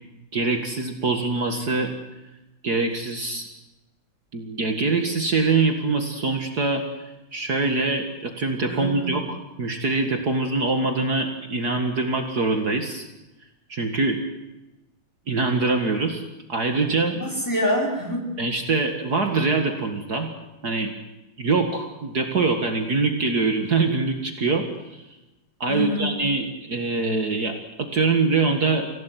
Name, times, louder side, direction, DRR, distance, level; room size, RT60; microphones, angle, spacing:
voice 1, 0.3-1.9 2.6-3.5 4.3-13.1 13.7-14.2 15.3-16.2 16.5-17.2 18.4-20.3 20.6-20.9 21.4-25.0 25.6-28.9, right 3 dB, 55° right, 5 dB, 2.4 m, -24 dB
voice 2, 8.7-9.1 17.1-18.3 25.7-26.2, equal, 10° left, 0 dB, 5.0 m, -26 dB
26.0 x 17.0 x 9.3 m, 1.0 s
omnidirectional pair, 2.1 m